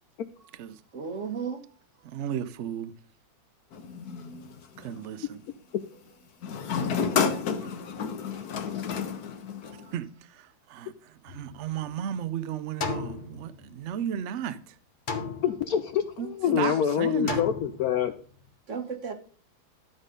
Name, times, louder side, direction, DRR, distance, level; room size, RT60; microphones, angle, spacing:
voice 1, 0.9-1.6 9.7-9.9 16.5-16.6 18.7-19.1, right 6 dB, 45° right, 1.3 m, -34 dB
voice 2, 2.0-2.9 4.8-5.4 9.9-14.8 16.2-16.3 16.6-17.4, right 10 dB, 75° right, 0.6 m, -34 dB
sound 1, 3.7-5.0 6.4-10.0, left 6 dB, 60° left, 1.3 m, -30 dB
sound 2, 11.3-12.2 12.8-14.1 15.1-16.0 17.3-18.2, left 4 dB, 40° left, 0.7 m, -35 dB
voice 3, 15.4-15.8 16.2-18.1, left 9 dB, 75° left, 0.8 m, -26 dB
12.5 x 4.2 x 5.2 m
omnidirectional pair, 2.1 m